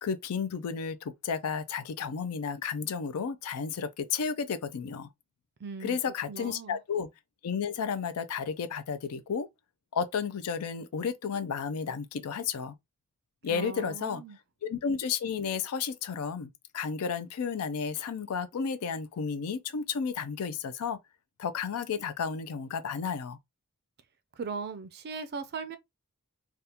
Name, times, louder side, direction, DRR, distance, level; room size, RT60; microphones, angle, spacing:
voice 1, 0.0-1.0 1.2-5.1 5.8-7.1 7.4-9.5 9.9-12.7 13.4-14.2 14.6-21.0 21.4-23.4, left 6 dB, 85° left, 0.4 m, -32 dB
voice 2, 5.6-6.8 13.5-14.4 24.4-25.8, right 5 dB, 50° right, 0.4 m, -39 dB
3.4 x 2.3 x 2.7 m
head